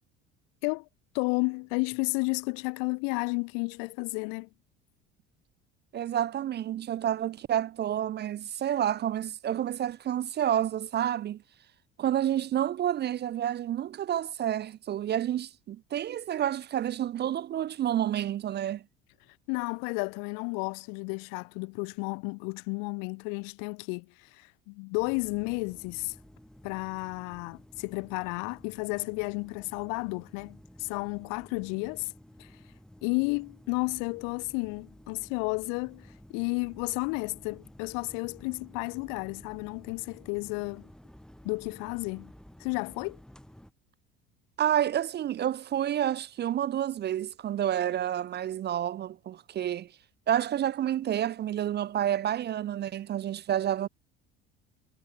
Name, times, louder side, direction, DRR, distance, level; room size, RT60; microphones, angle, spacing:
voice 1, 1.1-4.5 19.5-26.1 26.6-32.1 32.4-32.5 33.0-40.9 41.4-42.3 42.6-43.2, left 40 dB or more, 70° left, 1.0 m, -32 dB
voice 2, 5.9-11.4 12.0-18.8 44.6-49.9 50.3-53.9, right 11 dB, 30° right, 0.4 m, -29 dB
sound 1, 24.9-43.7, equal, ahead, 1.8 m, -53 dB
hypercardioid pair, 70°, 34 cm